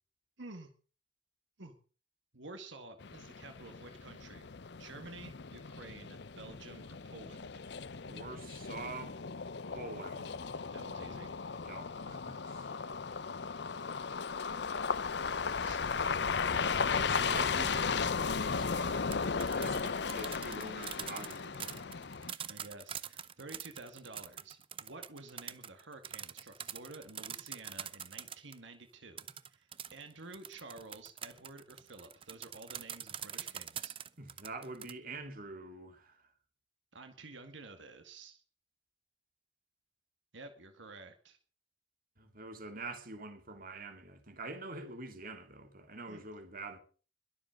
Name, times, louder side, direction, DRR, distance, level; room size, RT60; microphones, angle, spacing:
voice 1, 0.4-0.7 1.6-1.8 2.3-4.5 4.8-7.5 10.7-11.3 15.6-15.8 22.4-33.9 36.9-38.4 40.3-41.4 46.1-46.2, right 3 dB, 80° right, 2.2 m, -51 dB
sound 1, 3.0-22.3, left 5 dB, 60° left, 0.7 m, -36 dB
voice 2, 8.1-9.2 9.7-10.4 11.6-12.8 16.9-18.2 18.5-19.1 19.5-22.4 34.2-36.3 42.2-46.8, right 2 dB, 50° right, 2.9 m, -46 dB
sound 2, 18.9-28.6 29.2-34.9, right 9 dB, 30° right, 0.6 m, -44 dB
22.0 x 7.5 x 6.6 m
head